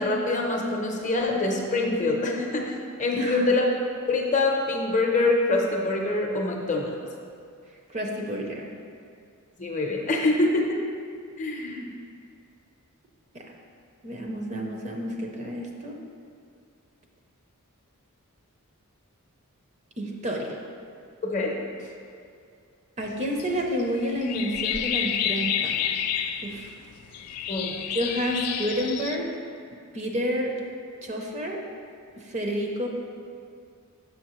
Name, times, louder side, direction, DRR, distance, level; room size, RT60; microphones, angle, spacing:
voice 1, 0.0-2.7 3.0-3.6 4.1-7.0 9.6-10.8 11.4-11.9 21.2-21.5 21.8-21.9 27.5-27.8, left 2 dB, 35° left, 0 dB, 0.7 m, -25 dB
voice 2, 3.2-3.5 7.9-8.7 13.3-13.4 14.0-16.0 20.0-20.6 23.0-25.8 26.4-26.7 27.9-29.2 29.9-30.5 31.0-31.6 32.3-32.9, equal, 30° right, 1 dB, 0.6 m, -29 dB
sound 1, 23.0-29.2, left 9 dB, 80° left, 0.4 m, -30 dB
6.8 x 5.6 x 3.0 m, 2.3 s
head